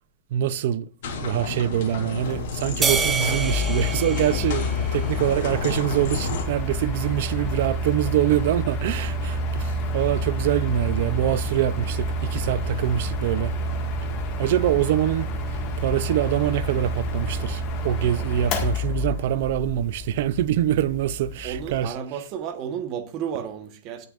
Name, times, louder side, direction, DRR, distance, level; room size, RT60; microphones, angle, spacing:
voice 1, 0.3-0.9 1.2-13.5 14.4-15.3 15.8-21.9, right 11 dB, 45° right, 0.6 m, -24 dB
sound 1, 1.0-6.4, left 3 dB, 50° left, 3.9 m, -31 dB
Mechanical fan, 2.2-21.8, equal, 25° left, 1.9 m, -29 dB
sound 2, 2.8-5.4, right 5 dB, 10° right, 1.0 m, -27 dB
voice 2, 21.4-24.1, right 8 dB, 30° right, 1.2 m, -32 dB
18.5 x 6.8 x 2.5 m
supercardioid pair, 170°, 0 cm